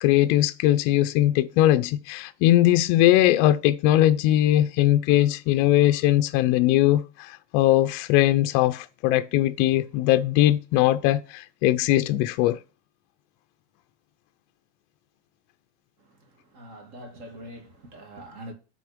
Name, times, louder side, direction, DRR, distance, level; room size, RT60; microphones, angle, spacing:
voice 1, 0.0-12.6, left 14 dB, 45° left, 0.4 m, -20 dB
voice 2, 16.0-18.5, right 1 dB, 50° right, 2.3 m, -44 dB
5.9 x 3.8 x 5.0 m
supercardioid pair, 140°, 36 cm